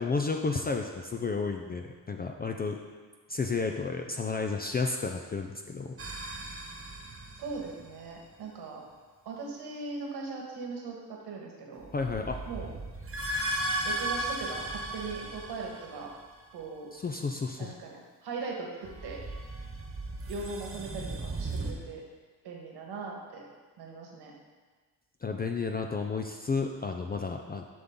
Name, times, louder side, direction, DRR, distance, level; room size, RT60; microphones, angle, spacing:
voice 1, 0.0-2.8 3.3-5.9 11.9-12.4 16.9-17.7 25.2-27.6, left 4 dB, 25° left, 3 dB, 0.5 m, -32 dB
sound 1, 6.0-7.9 11.8-16.3 18.8-21.7, right 1 dB, 30° right, 1.3 m, -36 dB
voice 2, 7.4-8.8 9.2-11.9 12.4-12.7 13.8-16.1 16.5-16.9 17.6-19.2 20.3-22.0 22.4-23.5 23.8-24.3, right 4 dB, 70° right, -1 dB, 1.7 m, -39 dB
7.6 x 5.6 x 3.8 m, 1.4 s
supercardioid pair, 70°, 41 cm